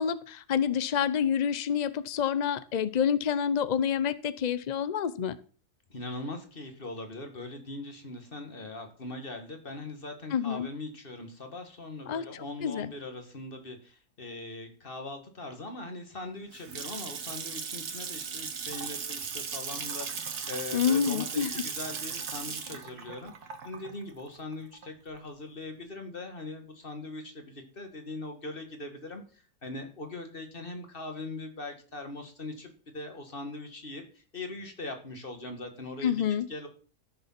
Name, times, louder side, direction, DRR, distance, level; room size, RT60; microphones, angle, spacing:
voice 1, 0.0-5.4 10.3-10.7 12.1-12.2 12.6-12.9 20.7-21.5 36.0-36.5, left 8 dB, 75° left, 16 dB, 0.4 m, -28 dB
voice 2, 5.9-23.3 23.6-36.7, left 2 dB, 35° left, 6 dB, 2.2 m, -41 dB
Water tap faucet / Sink (filling or washing) / Splash splatter, 16.3-25.2, right 6 dB, 85° right, 1.9 m, -37 dB
13.5 x 6.8 x 5.8 m, 0.40 s
omnidirectional pair, 1.6 m